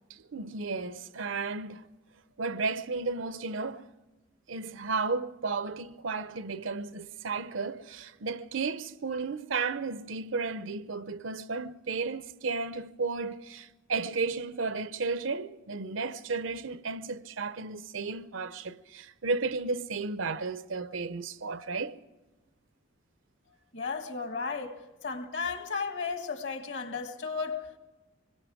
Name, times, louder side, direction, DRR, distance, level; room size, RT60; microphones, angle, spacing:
voice 1, 0.3-1.9 2.4-3.9 4.5-22.0, right 4 dB, 85° right, 0.7 m, -33 dB
voice 2, 23.7-24.8 25.0-27.8, left 5 dB, 65° left, 1.8 m, -34 dB
25.0 x 21.0 x 4.9 m
head